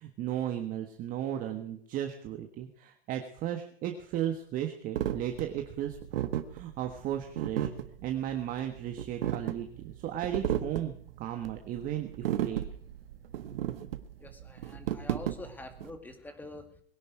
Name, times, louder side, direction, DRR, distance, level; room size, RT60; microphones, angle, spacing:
voice 1, 0.0-7.7 8.0-12.6, right 11 dB, 25° right, 6 dB, 1.5 m, -35 dB
sound 1, 5.0-15.9, right 11 dB, 65° right, 1.6 m, -34 dB
voice 2, 14.2-16.8, left 2 dB, 5° left, 8 dB, 2.3 m, -46 dB
21.5 x 11.0 x 4.7 m, 0.62 s
hypercardioid pair, 140°, 31 cm